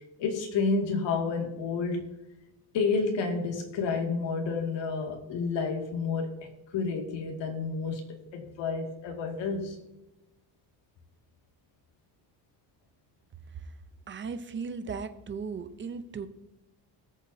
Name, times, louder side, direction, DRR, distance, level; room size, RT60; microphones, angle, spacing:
voice 1, 0.2-2.1 2.7-6.4 6.7-8.0 8.3-9.8, left 4 dB, 75° left, 2 dB, 2.3 m, -30 dB
voice 2, 14.1-16.3, right 5 dB, 25° right, 10 dB, 0.7 m, -37 dB
21.5 x 7.2 x 2.8 m, 0.95 s
cardioid pair, 165°, 44 cm